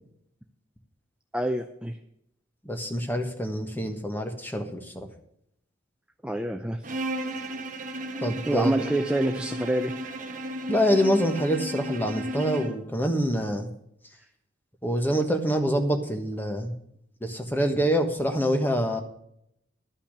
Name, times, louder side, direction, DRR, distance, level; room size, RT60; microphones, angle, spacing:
voice 1, 1.3-1.9 6.2-6.8 8.5-9.9, right 1 dB, 5° right, 5 dB, 0.5 m, -27 dB
voice 2, 2.6-5.1 8.2-8.8 10.7-13.7 14.8-16.7 17.2-19.0, equal, 10° left, 5 dB, 1.3 m, -26 dB
Bowed string instrument, 6.8-12.8, right 1 dB, 45° right, 1.2 m, -34 dB
12.0 x 5.7 x 8.6 m, 0.75 s
head